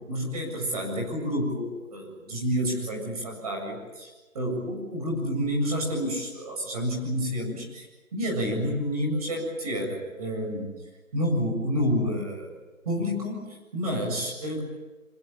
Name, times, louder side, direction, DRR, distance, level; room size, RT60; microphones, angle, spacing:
voice 1, 0.0-4.1 4.3-7.9 8.1-10.7 11.1-12.6 12.8-14.6, equal, 25° right, 0 dB, 7.7 m, -29 dB
26.5 x 22.0 x 8.5 m, 1.2 s
figure-of-eight pair, 165°, 43 cm